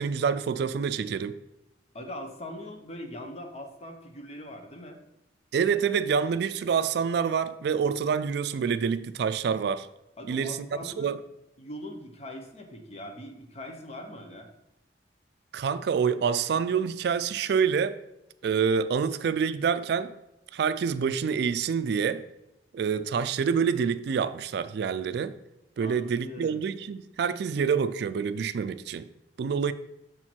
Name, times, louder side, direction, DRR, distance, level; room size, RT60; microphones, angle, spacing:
voice 1, 0.0-1.4 5.5-9.9 10.3-11.2 15.5-18.0 18.4-20.1 20.5-22.2 22.7-25.3 25.8-29.1 29.4-29.7, right 6 dB, 60° right, 0.3 m, -27 dB
voice 2, 1.9-5.0 10.2-11.1 11.6-14.5 25.8-26.6, left 1 dB, 35° left, 0.9 m, -41 dB
6.6 x 4.5 x 4.4 m
head